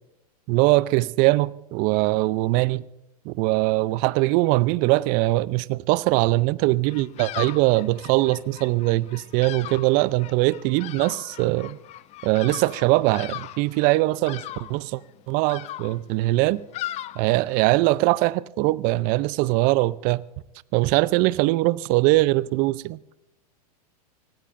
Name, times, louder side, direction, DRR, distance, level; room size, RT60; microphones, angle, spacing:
voice 1, 0.5-2.9 3.3-11.8 12.2-14.4 14.7-15.0 15.3-16.6 17.2-20.2 20.7-23.0, right 20 dB, 45° right, 0.6 m, -21 dB
Bird vocalization bird call bird song, 6.9-17.8, left 15 dB, 35° left, 0.6 m, -39 dB
25.0 x 19.0 x 2.6 m
hypercardioid pair, 105°, 20 cm